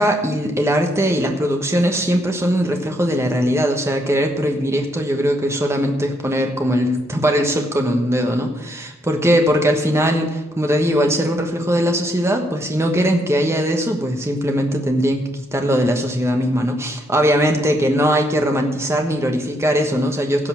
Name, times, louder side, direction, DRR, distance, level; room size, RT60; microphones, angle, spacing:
voice 1, 0.0-20.5, equal, 15° right, 3 dB, 1.2 m, -20 dB
16.5 x 5.5 x 7.1 m, 1.0 s
head